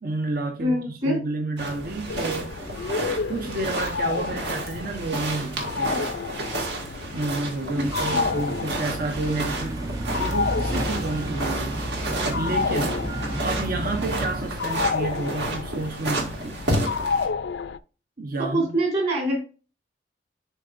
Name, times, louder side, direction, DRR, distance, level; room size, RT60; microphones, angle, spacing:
voice 1, 0.0-2.6 3.3-6.1 7.1-13.1 13.4-16.6 18.2-18.6, right 2 dB, 55° right, 0.9 m, -30 dB
voice 2, 0.6-1.2 7.7-8.3 18.4-19.4, right 1 dB, 40° right, 3.4 m, -25 dB
sound 1, 1.6-17.3, right 1 dB, 70° right, 2.0 m, -31 dB
sound 2, 2.1-17.8, left 5 dB, 70° left, 0.4 m, -31 dB
sound 3, 7.9-14.4, right 1 dB, 20° right, 0.3 m, -32 dB
11.5 x 4.5 x 2.5 m
head